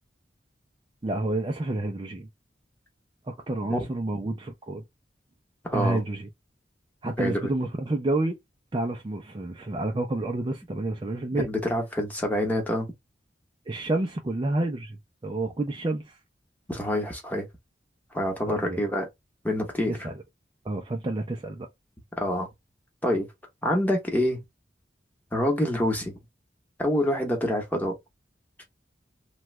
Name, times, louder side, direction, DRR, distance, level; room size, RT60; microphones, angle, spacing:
voice 1, 1.0-2.3 3.3-4.8 5.7-6.3 7.0-8.4 8.7-11.5 13.7-15.0 15.2-16.2 18.5-18.9 19.9-20.2 20.6-21.7, right 2 dB, 25° right, 0.4 m, -29 dB
voice 2, 5.6-6.0 7.2-7.4 11.4-12.9 16.7-17.5 18.1-19.1 19.4-20.1 22.2-22.5 23.0-23.3 23.6-24.4 25.3-26.2 26.8-28.0, left 1 dB, 10° left, 1.0 m, -26 dB
3.0 x 2.2 x 3.0 m
head